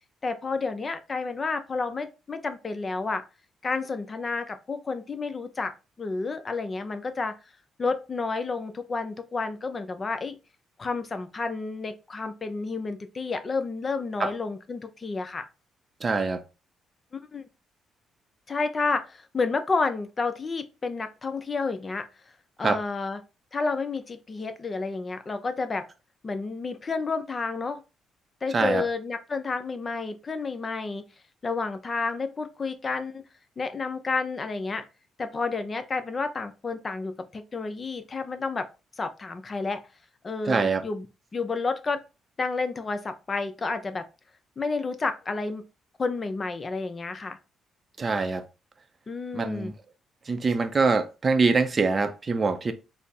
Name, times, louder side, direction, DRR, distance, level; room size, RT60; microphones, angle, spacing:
voice 1, 0.2-3.2 3.6-7.4 7.8-10.4 10.8-15.5 17.1-17.4 18.5-22.1 22.6-23.2 23.5-25.9 26.2-27.8 28.4-31.0 31.4-33.2 33.6-34.8 35.2-38.7 39.0-39.9 40.2-41.1 41.3-42.0 42.4-44.0 44.6-45.6 46.0-47.4 49.1-49.7, left 4 dB, 35° left, 0.5 m, -30 dB
voice 2, 16.0-16.4 22.6-22.8 28.5-28.8 40.4-40.8 48.0-48.4 49.3-49.7 50.3-52.7, right 4 dB, 35° right, 0.5 m, -24 dB
4.1 x 2.0 x 3.5 m
cardioid pair, 90°, 0 cm